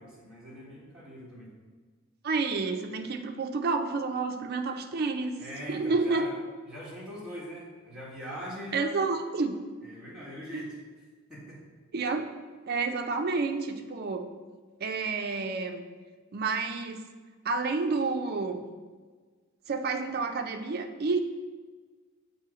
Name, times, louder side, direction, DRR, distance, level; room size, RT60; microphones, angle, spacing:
voice 1, 0.0-1.5 5.4-6.3 6.6-9.0 9.8-10.7 11.3-11.6, equal, 5° right, -7 dB, 1.6 m, -42 dB
voice 2, 2.2-5.4 5.7-6.3 8.7-9.5 10.5-10.6 11.9-12.3 12.7-14.3 14.8-15.8 16.3-17.0 17.4-18.7 19.7-21.2, right 4 dB, 50° right, 6 dB, 0.5 m, -29 dB
7.0 x 2.7 x 4.9 m, 1.4 s
head